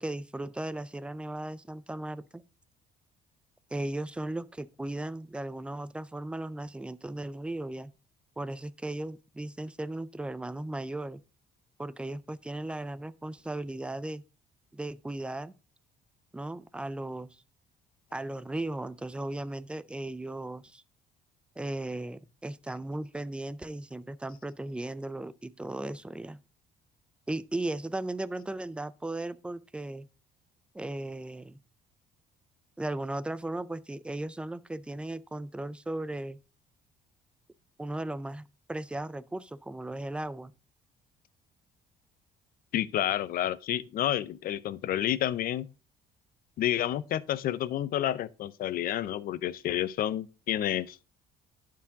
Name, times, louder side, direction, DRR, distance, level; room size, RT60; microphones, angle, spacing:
voice 1, 0.0-2.4 3.7-7.9 8.4-11.2 11.8-14.2 14.7-15.5 16.3-17.4 18.1-20.8 21.6-26.4 27.3-30.1 30.7-31.6 32.8-36.4 37.8-40.5, right 2 dB, 5° right, 0.4 m, -36 dB
voice 2, 42.7-45.7 46.6-51.0, left 12 dB, 60° left, 0.6 m, -30 dB
11.0 x 4.7 x 3.5 m
cardioid pair, 110°, 17 cm